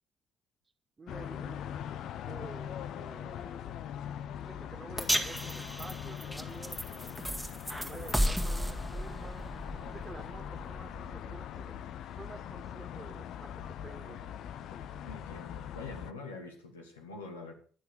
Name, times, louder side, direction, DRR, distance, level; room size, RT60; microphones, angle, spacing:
voice 1, 1.0-1.7 2.2-3.7 4.4-7.4 7.9-9.5 9.9-14.3, right 3 dB, 30° right, 2.1 m, -50 dB
sound 1, 1.1-16.1, left 9 dB, 65° left, 0.7 m, -42 dB
sound 2, 5.0-11.3, equal, ahead, 2.2 m, -35 dB
voice 2, 15.0-17.5, left 3 dB, 85° left, 1.8 m, -45 dB
11.5 x 9.5 x 6.5 m
figure-of-eight pair, 45°, 0 cm